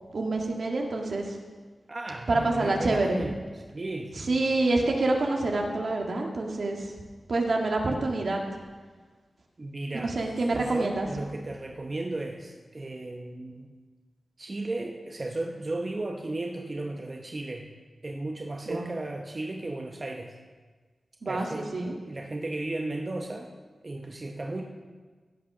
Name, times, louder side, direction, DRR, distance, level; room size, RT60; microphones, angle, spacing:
voice 1, 0.1-1.4 2.3-3.2 4.2-6.9 7.3-8.4 9.9-11.1 18.7-18.9 21.2-21.9, right 2 dB, 70° right, 1 dB, 1.8 m, -27 dB
voice 2, 1.9-4.5 9.6-13.7 14.4-17.7 18.0-20.3 21.2-21.8 22.0-23.5 23.8-24.6, right 2 dB, 40° right, 2 dB, 1.0 m, -35 dB
15.5 x 6.2 x 6.1 m, 1.4 s
cardioid pair, 60°, 0 cm